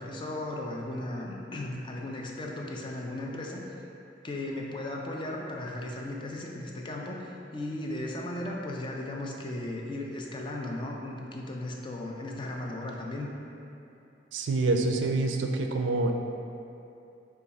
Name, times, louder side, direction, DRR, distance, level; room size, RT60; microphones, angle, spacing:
voice 1, 0.0-3.8 4.2-13.3, left 1 dB, 25° left, -1 dB, 0.4 m, -36 dB
voice 2, 14.3-16.1, right 2 dB, 85° right, 4 dB, 0.4 m, -26 dB
4.7 x 2.3 x 4.0 m, 2.7 s
head